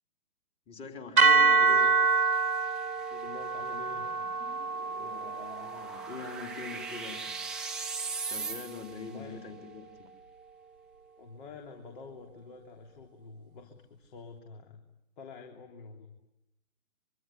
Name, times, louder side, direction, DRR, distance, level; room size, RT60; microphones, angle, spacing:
voice 1, 0.7-1.9 5.0-7.4 8.2-10.1, left 4 dB, 15° left, 5 dB, 3.2 m, -43 dB
sound 1, 1.2-9.4, right 4 dB, 85° right, 1.7 m, -28 dB
sound 2, 1.7-9.1, right 4 dB, ahead, 1.4 m, -41 dB
voice 2, 3.1-4.1 9.1-9.5 11.2-14.8 15.2-16.1, left 4 dB, 35° left, 3 dB, 3.3 m, -47 dB
24.5 x 24.5 x 10.0 m, 0.89 s
hypercardioid pair, 145°, 42 cm